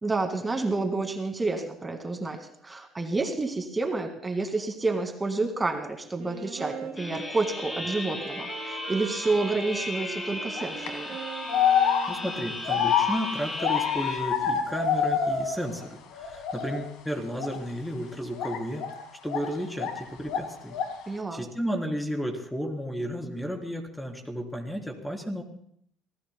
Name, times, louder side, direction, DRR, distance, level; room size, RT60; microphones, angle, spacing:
voice 1, 0.0-11.2 21.1-21.4, right 3 dB, 20° right, 5 dB, 2.0 m, -29 dB
Wind instrument woodwind instrument, 6.2-12.9, right 7 dB, 65° right, 2.6 m, -42 dB
sound 1, 7.0-14.2, left 1 dB, 25° left, 6.3 m, -36 dB
sound 2, 10.6-10.9 11.5-15.9 16.1-16.9 17.3-17.6 18.3-20.0 20.3-21.1, left 7 dB, 75° left, 1.9 m, -27 dB
voice 2, 11.8-18.8 19.2-20.7 21.3-25.4, equal, 5° left, 1 dB, 3.4 m, -33 dB
26.0 x 16.5 x 2.2 m, 0.67 s
supercardioid pair, 85°, 0 cm